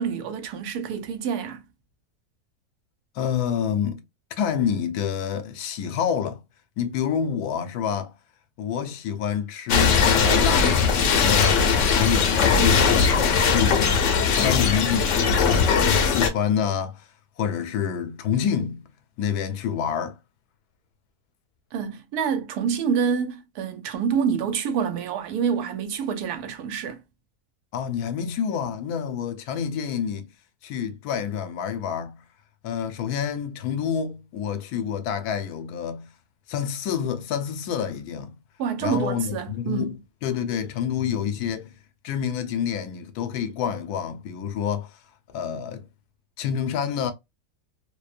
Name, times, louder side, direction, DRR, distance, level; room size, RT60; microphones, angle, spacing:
voice 1, 0.0-1.6 21.7-27.0 38.6-40.0, right 7 dB, 90° right, 1.1 m, -27 dB
voice 2, 3.2-4.0 4.4-6.4 6.8-8.1 8.6-11.6 12.0-13.9 14.3-17.1 17.4-18.8 19.2-20.2 27.7-30.3 30.6-32.2 32.6-36.1 36.5-38.4 38.8-40.0 40.2-41.7 42.0-44.9 45.3-45.9 46.4-47.1, left 8 dB, 80° left, 1.1 m, -28 dB
sound 1, 9.7-16.3, left 5 dB, 65° left, 0.8 m, -20 dB
2.7 x 2.1 x 2.4 m
omnidirectional pair, 1.6 m